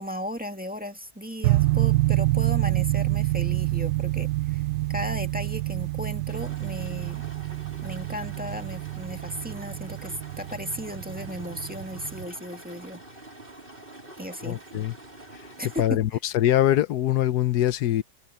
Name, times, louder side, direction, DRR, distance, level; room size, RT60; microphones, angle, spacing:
voice 1, 0.0-4.6 4.9-7.2 7.8-13.0 14.2-14.6 15.6-16.0, equal, 5° right, 2.0 m, -35 dB
sound 1, 1.4-12.2, right 18 dB, 90° right, 1.2 m, -27 dB
sound 2, 6.3-15.9, right 1 dB, 35° right, 4.1 m, -46 dB
voice 2, 14.4-14.9 15.3-15.5 15.8-18.0, left 12 dB, 90° left, 1.3 m, -23 dB
omnidirectional pair, 1.7 m